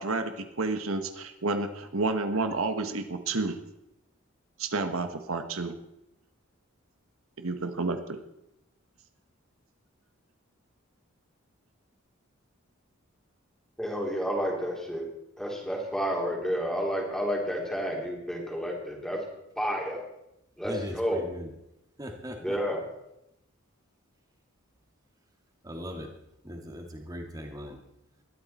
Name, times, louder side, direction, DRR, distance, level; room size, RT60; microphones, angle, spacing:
voice 1, 0.0-3.6 4.6-5.7 7.4-8.2, right 3 dB, 80° right, 1.4 m, -30 dB
voice 2, 13.8-15.1 15.4-19.2 19.6-20.0 20.6-21.2 22.4-22.9, equal, ahead, 3.4 m, -30 dB
voice 3, 20.6-21.5 22.0-22.6 25.6-26.1 26.4-27.8, equal, 15° right, 2.3 m, -39 dB
20.5 x 13.5 x 4.4 m
head